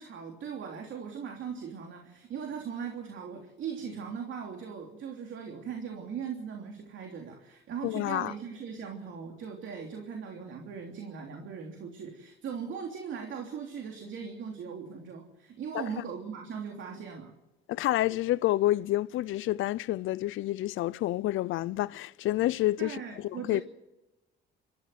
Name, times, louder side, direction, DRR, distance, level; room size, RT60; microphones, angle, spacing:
voice 1, 0.0-17.3 22.8-23.6, right 6 dB, 70° right, 3.2 m, -39 dB
voice 2, 7.8-8.3 15.7-15.9 17.7-23.6, left 15 dB, 85° left, 0.6 m, -29 dB
27.0 x 14.0 x 7.8 m
cardioid pair, 90°, 20 cm